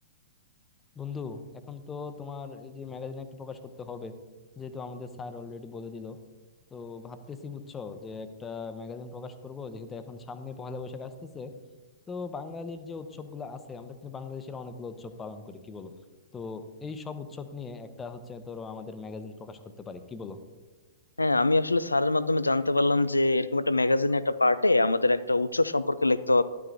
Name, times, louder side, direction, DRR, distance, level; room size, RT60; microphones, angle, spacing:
voice 1, 0.9-4.1 4.6-6.2 6.7-11.5 12.1-15.9 16.3-20.4, left 4 dB, 15° left, 9 dB, 0.7 m, -39 dB
voice 2, 21.2-26.4, left 2 dB, 90° left, 15 dB, 0.3 m, -24 dB
11.0 x 9.3 x 2.6 m, 1.3 s
figure-of-eight pair, 110°, 0 cm